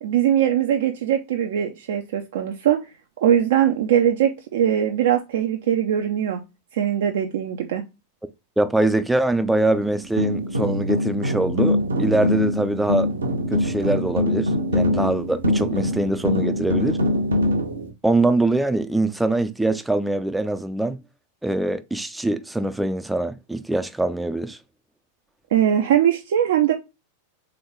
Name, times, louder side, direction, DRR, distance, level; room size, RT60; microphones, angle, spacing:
voice 1, 0.0-2.8 3.2-6.4 6.7-7.8 25.5-26.7, right 10 dB, 55° right, 0.5 m, -21 dB
voice 2, 8.6-13.1 13.5-17.0 18.0-21.0 21.4-24.6, right 2 dB, 5° right, 0.5 m, -23 dB
sound 1, 9.7-17.9, left 1 dB, 75° right, 0.9 m, -23 dB
3.8 x 3.4 x 3.6 m
figure-of-eight pair, 90°, 0 cm